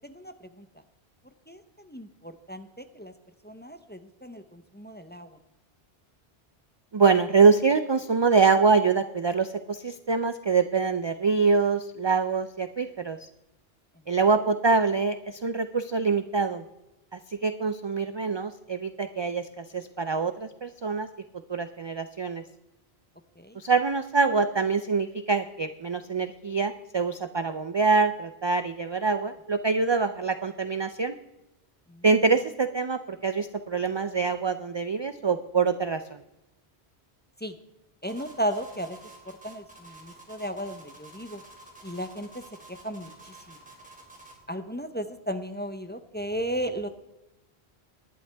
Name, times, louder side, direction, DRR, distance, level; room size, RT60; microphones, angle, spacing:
voice 1, 0.0-0.6 1.5-3.1 3.4-5.3 23.4-23.6 31.9-32.0 37.4-37.6 38.0-39.0 39.4-41.4 41.8-42.3 42.7-43.6 44.5-46.9, equal, 10° left, 8 dB, 0.6 m, -35 dB
voice 2, 6.9-13.2 14.1-16.6 17.1-21.1 21.5-22.4 23.6-31.1 32.0-36.2, right 4 dB, 45° right, 10 dB, 0.3 m, -25 dB
sound 1, 38.0-44.4, right 2 dB, 5° right, 2.7 m, -50 dB
19.0 x 11.0 x 3.4 m, 0.94 s
omnidirectional pair, 1.1 m